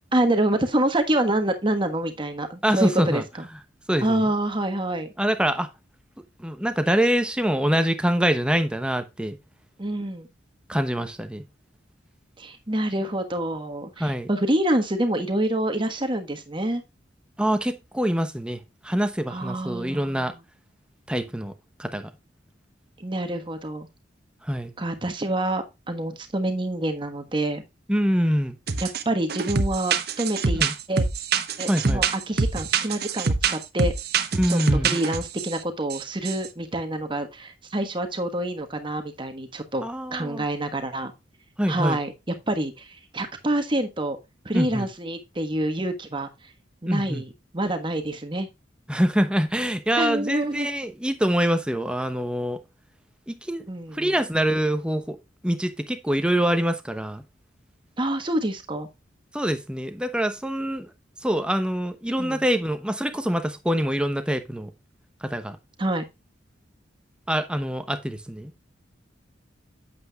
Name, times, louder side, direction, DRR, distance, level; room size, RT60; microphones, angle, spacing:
voice 1, 0.1-3.5 4.0-5.1 9.8-10.3 12.4-16.8 19.3-20.3 23.0-23.9 24.8-27.6 28.8-30.6 30.9-31.0 31.6-33.9 34.5-39.8 40.1-41.1 41.7-42.9 43.1-44.2 44.4-46.3 46.8-48.5 50.0-50.7 53.7-54.1 58.0-58.9 62.2-62.4 65.8-66.0, right 1 dB, 25° right, 1.3 m, -27 dB
voice 2, 2.6-3.2 3.9-4.3 5.2-5.7 6.4-9.4 10.7-11.4 14.0-14.3 17.4-20.3 21.1-21.5 21.8-22.1 24.4-24.7 27.9-28.6 30.5-30.7 31.7-32.0 34.3-35.0 39.8-40.4 41.6-42.0 44.5-44.9 46.9-47.2 48.9-52.6 53.3-53.6 53.9-55.2 55.4-57.2 59.3-60.9 61.2-64.7 65.2-65.6 67.3-68.5, equal, 5° right, 0.9 m, -25 dB
sound 1, 28.7-29.0 29.3-35.5 35.9-36.5, right 5 dB, 55° right, 0.9 m, -25 dB
8.7 x 8.1 x 2.3 m
head